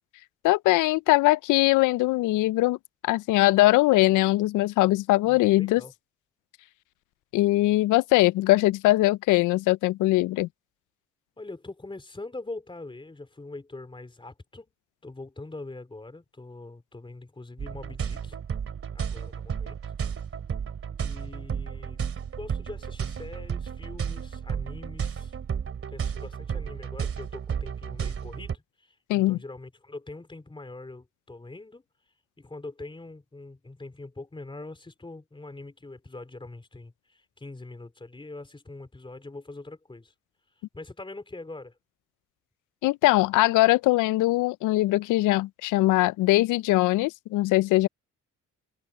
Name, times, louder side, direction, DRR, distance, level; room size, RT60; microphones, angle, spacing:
voice 1, 0.4-2.8 3.0-5.8 7.3-10.5 29.1-29.4 42.8-47.9, left 18 dB, 85° left, 0.5 m, -21 dB
voice 2, 5.3-5.9 11.4-14.7 15.0-18.4 18.9-19.8 21.0-22.0 22.4-25.4 25.9-31.8 32.4-40.1 40.7-41.8, left 2 dB, 15° left, 3.4 m, -43 dB
sound 1, 17.6-28.6, right 7 dB, 45° right, 2.7 m, -33 dB
cardioid pair, 90°, 30 cm